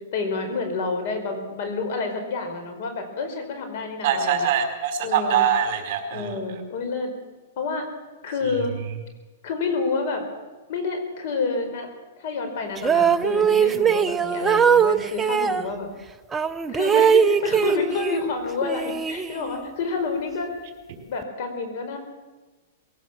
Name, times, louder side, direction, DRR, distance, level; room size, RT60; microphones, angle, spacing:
voice 1, 0.1-4.5 5.0-5.5 6.1-7.1 7.6-7.9 8.2-8.7 9.4-10.3 10.7-11.9 12.2-15.9 16.7-20.5 21.1-22.0, left 4 dB, 55° left, 7 dB, 4.8 m, -28 dB
voice 2, 4.0-6.4 8.4-8.6, right 8 dB, 45° right, 5 dB, 4.5 m, -23 dB
sound 1, 12.8-15.6 16.3-18.3 18.6-19.7, right 7 dB, 10° right, 0.7 m, -21 dB
22.0 x 17.0 x 7.4 m, 1.2 s
hypercardioid pair, 150°, 0 cm